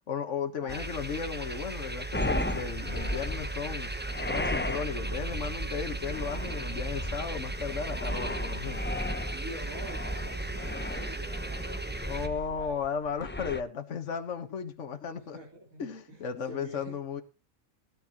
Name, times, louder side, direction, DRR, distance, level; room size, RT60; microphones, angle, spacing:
voice 1, 0.1-3.9 4.3-8.8 12.1-15.4 15.8-17.2, left 6 dB, 60° left, 1.7 m, -35 dB
sound 1, 0.7-12.3, right 2 dB, 10° right, 0.9 m, -36 dB
sound 2, 2.1-13.6, left 1 dB, 10° left, 0.6 m, -36 dB
voice 2, 9.0-12.2 12.5-12.8 15.2-15.8 16.1-17.0, right 1 dB, 80° right, 4.5 m, -46 dB
17.0 x 10.0 x 3.0 m
omnidirectional pair, 1.4 m